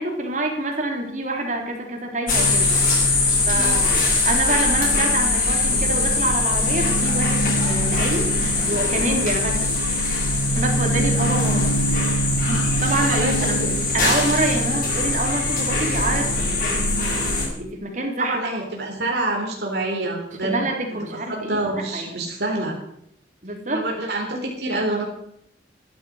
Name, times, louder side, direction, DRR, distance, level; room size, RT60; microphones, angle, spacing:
voice 1, 0.0-2.7 3.5-3.9 4.2-9.7 10.6-11.7 12.8-13.7 13.9-16.8 17.4-18.4 20.4-22.3 23.4-23.9, right 2 dB, 45° right, 2 dB, 3.8 m, -26 dB
sound 1, 2.3-17.5, left 2 dB, 50° left, 7.2 m, -21 dB
voice 2, 13.0-13.7 18.2-20.6 21.3-22.8 23.7-25.0, right 2 dB, 70° right, -1 dB, 3.9 m, -27 dB
14.5 x 12.5 x 6.6 m, 0.74 s
head